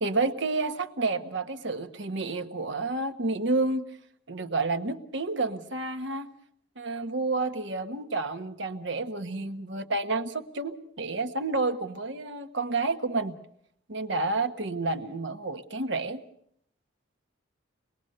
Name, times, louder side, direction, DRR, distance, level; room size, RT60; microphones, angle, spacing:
voice 1, 0.0-3.9 4.3-6.3 6.8-13.4 13.9-16.2, right 3 dB, 65° right, 8 dB, 1.3 m, -30 dB
24.5 x 21.0 x 6.7 m, 0.68 s
head